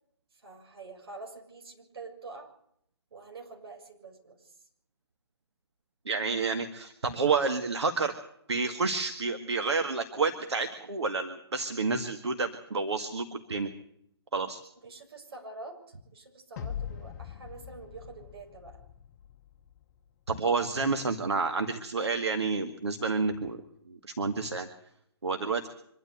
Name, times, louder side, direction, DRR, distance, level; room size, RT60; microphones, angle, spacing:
voice 1, 0.4-2.5 3.1-4.6 14.8-18.8, right 3 dB, 60° right, 3 dB, 6.7 m, -46 dB
voice 2, 6.1-8.1 8.5-13.7 14.3-14.6 20.3-23.6 23.9-24.7 25.2-25.7, right 4 dB, 80° right, 6 dB, 2.0 m, -29 dB
sound 1, 16.6-19.8, left 9 dB, 40° left, 1.2 m, -42 dB
25.5 x 12.5 x 8.1 m, 0.72 s
hypercardioid pair, 140°, 14 cm